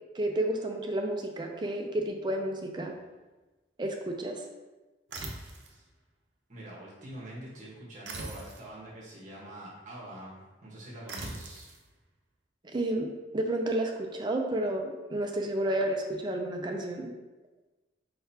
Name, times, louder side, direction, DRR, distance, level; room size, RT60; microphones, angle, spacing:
voice 1, 0.1-2.9 3.8-4.4 12.6-13.1 13.3-17.1, right 1 dB, 25° right, 2 dB, 0.5 m, -31 dB
sound 1, 5.1-5.8 8.0-8.7 11.1-11.8, right 2 dB, 65° right, 0.7 m, -40 dB
voice 2, 6.5-11.7, right 1 dB, 40° right, -5 dB, 1.2 m, -45 dB
4.5 x 3.9 x 2.8 m, 1.2 s
head